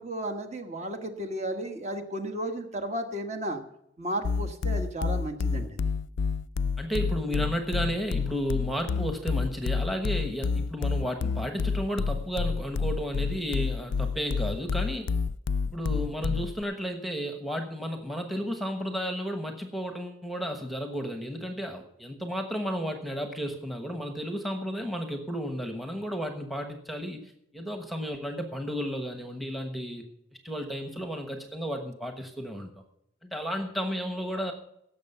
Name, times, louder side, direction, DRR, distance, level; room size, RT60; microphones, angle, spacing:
voice 1, 0.0-3.6 4.0-5.8, right 1 dB, 35° right, 5 dB, 1.3 m, -34 dB
sound 1, 4.2-16.6, left 5 dB, 85° left, 0.4 m, -29 dB
voice 2, 6.8-15.1 15.7-30.1 30.4-32.7 33.2-34.5, equal, ahead, 5 dB, 1.1 m, -33 dB
17.0 x 7.1 x 5.5 m, 0.77 s
head